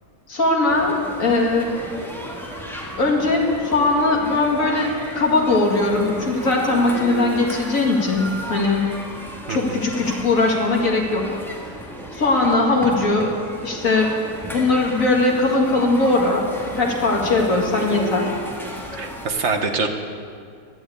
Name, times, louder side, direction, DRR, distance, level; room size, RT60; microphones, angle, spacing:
voice 1, 0.3-1.7 3.0-8.8 9.5-11.4 12.1-13.3 13.6-14.1 14.5-16.4 16.7-18.3, left 2 dB, 50° left, -1 dB, 2.5 m, -20 dB
sound 1, 0.7-19.3, equal, ahead, 1.4 m, -34 dB
voice 2, 9.5-9.8 19.0-19.9, right 4 dB, 45° right, 5 dB, 1.2 m, -24 dB
12.0 x 9.4 x 8.4 m, 2.2 s
omnidirectional pair, 1.8 m